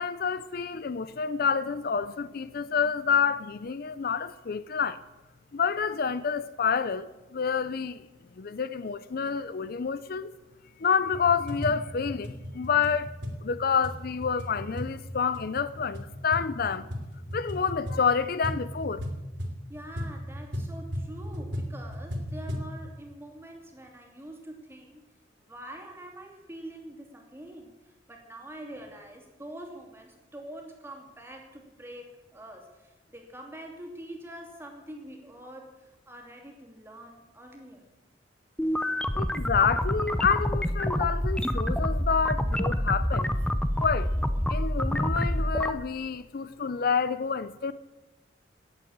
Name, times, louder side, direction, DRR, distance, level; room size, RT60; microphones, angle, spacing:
voice 1, 0.0-5.0 5.5-8.0 8.4-10.3 10.8-13.2 13.4-16.9 17.3-19.1 39.2-43.3 43.8-44.1 44.5-47.7, left 6 dB, 50° left, 0.5 m, -28 dB
sound 1, 11.1-22.7, equal, 70° right, 3.0 m, -36 dB
voice 2, 19.7-25.0 25.4-37.9 38.8-38.9, right 1 dB, 10° right, 2.7 m, -45 dB
sound 2, 38.6-45.7, equal, 5° left, 0.6 m, -27 dB
17.5 x 7.8 x 8.7 m
head